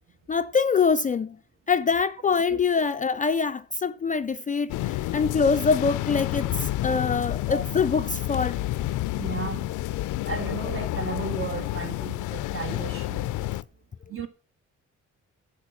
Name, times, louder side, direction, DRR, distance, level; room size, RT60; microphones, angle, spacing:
voice 1, 0.3-1.4 1.7-8.6, left 5 dB, 25° left, 0.4 m, -24 dB
sound 1, 4.7-13.6, left 16 dB, 80° left, 0.5 m, -29 dB
voice 2, 9.2-9.7 10.3-13.3 14.1-14.3, right 5 dB, 45° right, 1.7 m, -34 dB
8.4 x 7.7 x 6.2 m
cardioid pair, 90°, 30 cm